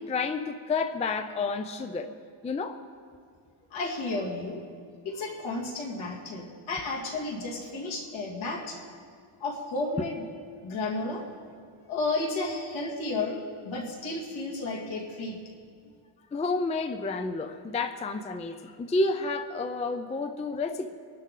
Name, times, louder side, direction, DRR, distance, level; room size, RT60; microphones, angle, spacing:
voice 1, 0.0-2.1 2.4-2.8 16.3-20.9, left 3 dB, 15° left, 8 dB, 0.4 m, -30 dB
voice 2, 3.7-4.6 5.0-8.8 9.4-10.3 10.6-11.3 11.9-13.4 13.6-15.4, left 2 dB, 70° left, -2 dB, 2.6 m, -32 dB
24.0 x 12.0 x 3.8 m, 2.2 s
wide cardioid pair, 170°, 48 cm